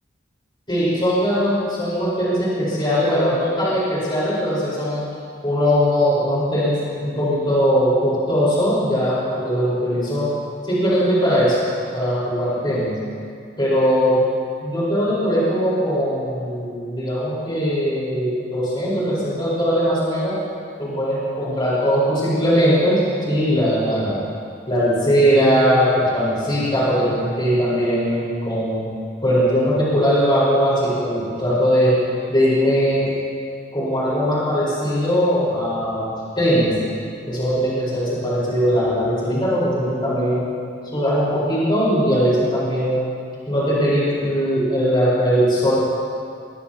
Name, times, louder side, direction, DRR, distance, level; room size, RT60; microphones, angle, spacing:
voice 1, 0.7-5.0 5.4-10.3 10.6-11.6 11.9-13.0 13.6-14.3 14.6-20.4 20.8-24.2 24.7-28.9 29.2-32.0 32.3-33.1 33.7-36.1 36.4-36.8 37.3-40.5 40.9-43.0 43.5-45.8, equal, 25° left, -8 dB, 4.6 m, -20 dB
22.0 x 17.0 x 3.0 m, 2.3 s
head